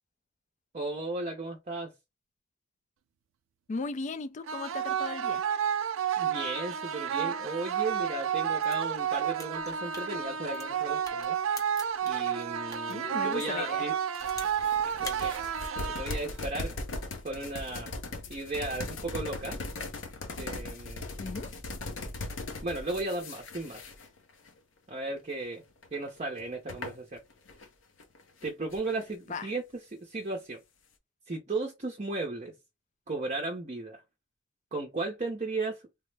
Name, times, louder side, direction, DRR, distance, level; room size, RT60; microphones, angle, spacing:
voice 1, 0.7-1.9 6.2-11.4 12.0-13.9 14.8-15.4 15.8-16.7 17.2-17.9 18.3-19.6 20.3-21.0 22.6-23.8 24.9-25.6 25.9-27.2 28.4-29.6 29.9-30.6 31.3-32.5 33.1-34.0 34.7-35.8, right 2 dB, 35° right, 0.6 m, -35 dB
voice 2, 3.7-5.5 12.9-13.9 21.2-21.5 29.3-29.5, left 3 dB, 40° left, 0.3 m, -37 dB
sound 1, 4.5-16.5, right 8 dB, 85° right, 0.4 m, -31 dB
sound 2, 8.5-12.9 13.3-14.7 14.9-15.2, left 2 dB, 15° left, 0.8 m, -45 dB
sound 3, 14.2-24.5 24.9-25.2 25.8-27.7 28.0-29.1, left 2 dB, 75° left, 0.7 m, -39 dB
3.5 x 2.0 x 3.2 m
head